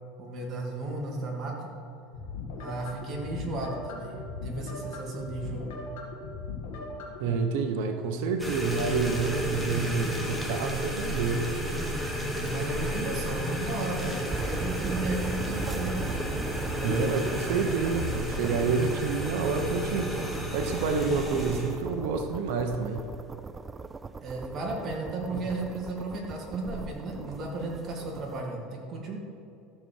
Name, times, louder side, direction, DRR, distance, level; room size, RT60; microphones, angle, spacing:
voice 1, 0.2-1.7 2.6-4.2 4.4-5.7 12.4-16.2 24.2-29.2, right 2 dB, 35° right, -1 dB, 2.4 m, -34 dB
sound 1, 2.1-7.3, left 3 dB, 80° left, 2.2 m, -39 dB
voice 2, 7.2-11.5 16.8-20.1 20.5-23.1 25.3-25.4, right 5 dB, 75° right, 6 dB, 1.0 m, -29 dB
sound 2, 8.4-21.8, equal, ahead, 1.6 m, -32 dB
sound 3, 14.3-28.4, right 4 dB, 20° right, 0.3 m, -39 dB
13.5 x 6.9 x 4.7 m, 2.7 s
supercardioid pair, 125°, 0 cm